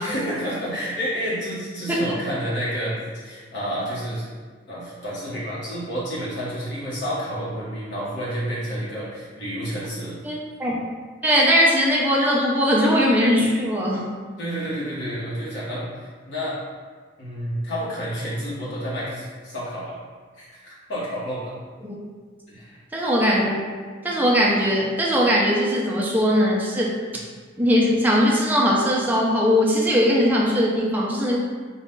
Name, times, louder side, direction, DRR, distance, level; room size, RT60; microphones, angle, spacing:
voice 1, 0.0-3.0 3.2-4.2 4.7-10.2 14.4-16.5 17.2-20.0 20.4-21.5 22.5-22.8, equal, 70° left, -9 dB, 1.3 m, -30 dB
voice 2, 10.2-10.8 11.2-14.1 22.9-23.6 24.0-26.9 27.6-31.4, equal, 10° right, -4 dB, 0.5 m, -20 dB
4.1 x 2.4 x 3.7 m, 1.5 s
head